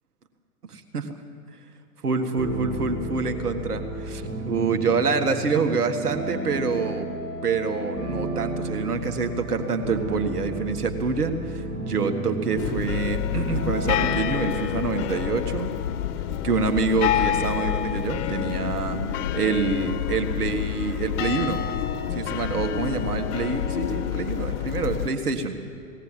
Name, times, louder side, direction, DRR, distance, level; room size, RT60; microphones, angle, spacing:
voice 1, 0.7-1.2 2.0-7.1 7.4-15.7 16.4-21.6 22.1-25.6, right 4 dB, 90° right, 6 dB, 1.8 m, -26 dB
sound 1, 2.3-14.2, right 2 dB, 30° right, 6.1 m, -33 dB
sound 2, 12.6-25.1, left 10 dB, 55° left, 1.4 m, -28 dB
19.5 x 17.5 x 7.5 m, 2.6 s
hypercardioid pair, 120°, 44 cm